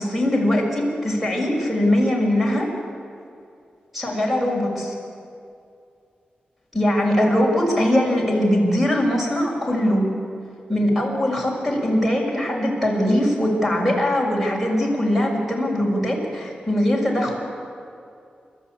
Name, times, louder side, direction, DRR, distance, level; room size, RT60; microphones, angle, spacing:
voice 1, 0.0-2.7 3.9-4.9 6.7-10.1 10.7-17.4, left 1 dB, 5° right, -1 dB, 6.3 m, -21 dB
30.0 x 13.5 x 8.6 m, 2.4 s
wide cardioid pair, 120°, 3 cm